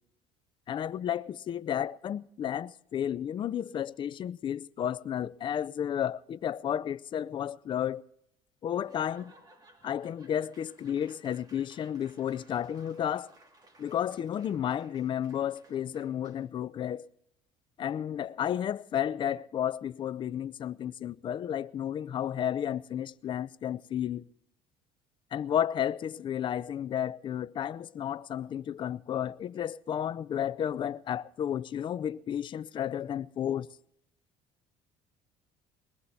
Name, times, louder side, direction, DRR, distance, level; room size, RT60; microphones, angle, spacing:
voice 1, 0.7-8.0 8.6-9.3 9.8-13.3 13.8-17.1 17.8-24.2 25.3-33.7, left 10 dB, 40° left, 0.5 m, -32 dB
Laughter / Applause / Crowd, 8.8-16.6, right 2 dB, 30° right, 2.5 m, -59 dB
22.0 x 20.0 x 2.8 m
cardioid pair, 130°, 13 cm